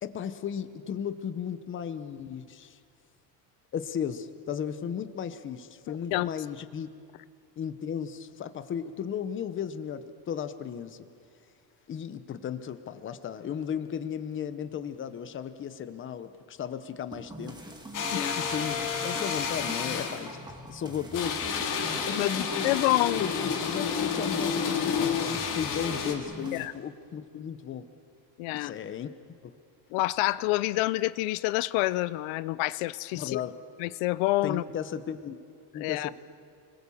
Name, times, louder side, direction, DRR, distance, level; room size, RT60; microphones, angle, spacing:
voice 1, 0.0-2.8 3.7-6.9 7.6-11.0 11.9-17.6 18.1-20.4 20.6-21.4 22.1-22.7 23.2-27.8 28.5-29.1 29.4-29.5 33.1-33.6 34.4-35.4 35.7-36.1, left 8 dB, 25° left, 11 dB, 0.9 m, -35 dB
voice 2, 5.9-6.3 18.1-18.3 22.1-22.3 22.6-23.2 26.5-26.7 28.4-28.7 29.9-33.4 33.8-34.6 35.8-36.1, left 19 dB, 80° left, 17 dB, 0.7 m, -27 dB
sound 1, 17.1-26.7, right 1 dB, 10° right, 1.8 m, -44 dB
sound 2, 17.9-20.3 21.1-26.1, left 6 dB, 40° left, 2.5 m, -30 dB
29.5 x 21.5 x 7.1 m, 2.3 s
cardioid pair, 175°, 47 cm